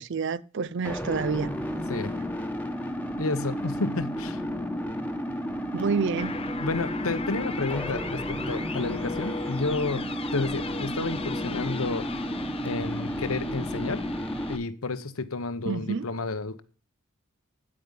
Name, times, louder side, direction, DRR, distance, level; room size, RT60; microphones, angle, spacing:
voice 1, 0.0-1.5 5.7-6.4 15.6-16.1, right 5 dB, 55° right, 0.5 m, -28 dB
sound 1, 0.8-14.6, equal, 5° left, 1.2 m, -32 dB
voice 2, 3.2-4.4 6.6-10.1 10.3-12.3 12.6-14.0 14.5-16.6, left 3 dB, 75° left, 1.0 m, -31 dB
sound 2, 6.2-14.6, left 4 dB, 25° left, 0.6 m, -39 dB
9.4 x 8.6 x 5.4 m
head